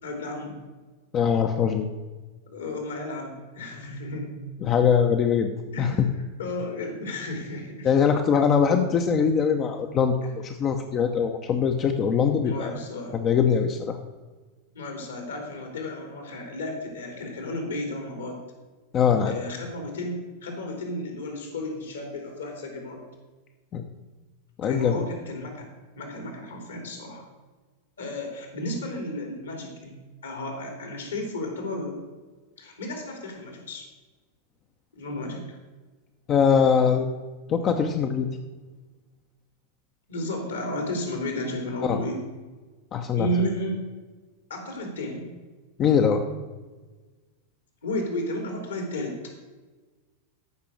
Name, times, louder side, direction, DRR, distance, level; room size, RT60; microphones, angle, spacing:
voice 1, 0.0-0.6 2.5-4.4 5.7-6.1 6.4-7.9 12.4-13.2 14.7-18.4 19.2-23.0 24.6-27.2 28.0-32.0 32.6-33.9 34.9-35.4 40.1-42.2 43.2-43.8 44.5-45.3 47.8-49.2, left 1 dB, 70° left, 3 dB, 3.1 m, -33 dB
voice 2, 1.1-1.9 4.6-5.5 5.8-6.1 7.8-12.7 13.1-14.0 18.9-19.3 23.7-23.8 24.6-25.0 36.3-37.1 37.5-38.3 41.8-42.0 42.9-43.3 45.8-46.2, left 7 dB, 30° left, 5 dB, 0.8 m, -22 dB
14.0 x 6.0 x 6.4 m, 1.3 s
figure-of-eight pair, 90°, 0 cm